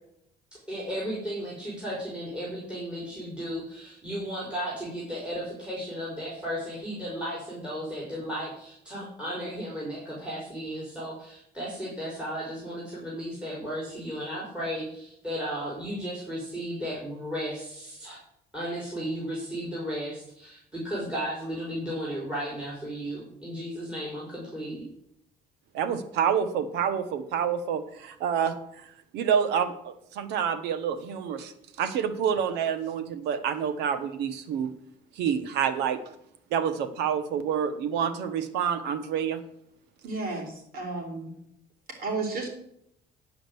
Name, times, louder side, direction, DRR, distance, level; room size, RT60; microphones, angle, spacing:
voice 1, 0.5-18.2 18.5-24.8, equal, 5° right, -4 dB, 4.4 m, -34 dB
voice 2, 25.7-28.6 28.8-31.5 31.8-34.7 35.2-36.0 36.5-39.4, right 8 dB, 85° right, 11 dB, 1.1 m, -28 dB
voice 3, 40.0-41.3 42.0-42.5, right 3 dB, 60° right, 2 dB, 3.9 m, -32 dB
10.5 x 5.1 x 7.9 m, 0.75 s
cardioid pair, 110°, 17 cm